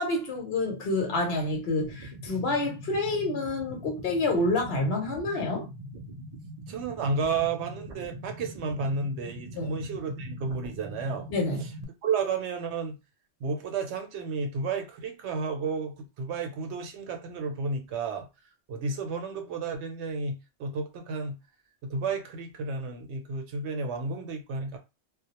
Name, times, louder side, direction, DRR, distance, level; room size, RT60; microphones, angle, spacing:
voice 1, 0.0-5.6 9.6-9.7 11.3-11.6, left 2 dB, 60° left, 0.9 m, -28 dB
sound 1, 1.8-11.8, right 1 dB, 90° right, 0.3 m, -42 dB
voice 2, 6.7-11.3 11.6-11.7 12.0-13.0 13.4-18.3 18.7-21.4 21.8-24.8, right 4 dB, 70° right, 0.8 m, -32 dB
2.2 x 2.0 x 2.9 m
omnidirectional pair, 1.3 m